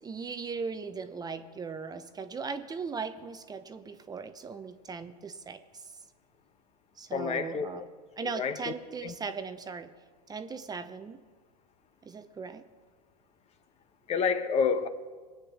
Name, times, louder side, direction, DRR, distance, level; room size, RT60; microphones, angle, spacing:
voice 1, 0.0-5.9 7.0-7.8 8.2-9.9 10.3-11.2 12.0-12.6, right 5 dB, 20° right, 0.9 m, -38 dB
voice 2, 7.1-7.7 8.2-8.7 9.0-9.1 14.1-14.9, left 6 dB, 30° left, 1.2 m, -29 dB
23.0 x 9.1 x 6.3 m
hypercardioid pair, 95°, 20 cm